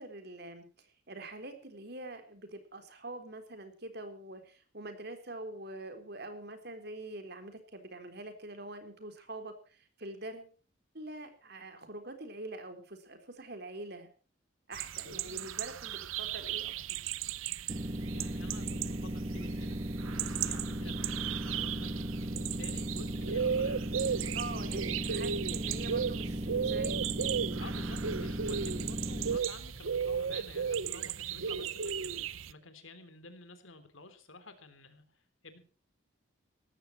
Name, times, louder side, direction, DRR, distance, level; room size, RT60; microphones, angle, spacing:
voice 1, 0.0-10.5 10.9-14.1 14.7-17.0 24.3-27.1, right 2 dB, 55° right, 7 dB, 3.8 m, -45 dB
sound 1, 14.7-32.5, right 7 dB, 90° right, 0.7 m, -35 dB
voice 2, 15.0-15.5 18.1-24.7 27.6-35.6, left 3 dB, 80° left, 10 dB, 3.4 m, -52 dB
sound 2, 17.7-29.4, right 1 dB, 30° right, 1.1 m, -37 dB
sound 3, 24.6-30.9, equal, 35° left, 3.9 m, -55 dB
18.0 x 14.5 x 4.4 m, 0.39 s
head